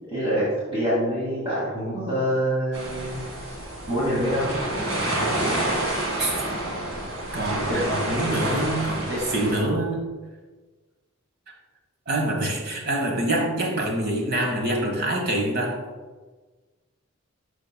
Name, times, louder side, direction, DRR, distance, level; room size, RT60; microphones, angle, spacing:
voice 1, 0.1-3.5 3.9-4.5 7.7-7.9 9.1-9.5, equal, 25° right, -10 dB, 2.1 m, -26 dB
sound 1, 2.7-9.6, right 1 dB, 70° right, 2.0 m, -28 dB
voice 2, 7.3-10.1 12.1-15.8, right 1 dB, 45° right, 0 dB, 1.4 m, -25 dB
12.5 x 4.9 x 2.2 m, 1.3 s
head